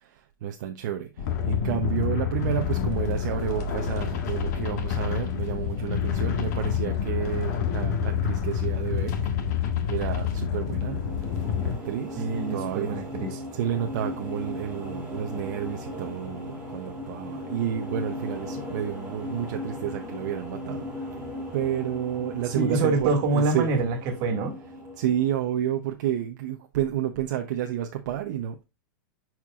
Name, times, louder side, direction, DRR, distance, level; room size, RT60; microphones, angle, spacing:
voice 1, 0.0-9.5 9.9-11.0 11.6-13.0 13.5-21.2 21.5-23.7 25.0-28.6, right 10 dB, 60° right, 0.8 m, -30 dB
sound 1, 1.2-11.8, left 7 dB, 55° left, 1.6 m, -28 dB
sound 2, 10.4-25.7, left 1 dB, 10° right, 2.3 m, -37 dB
voice 2, 12.2-13.4 22.5-24.6, right 3 dB, 40° right, 1.9 m, -26 dB
10.0 x 4.6 x 2.4 m
supercardioid pair, 160°, 11 cm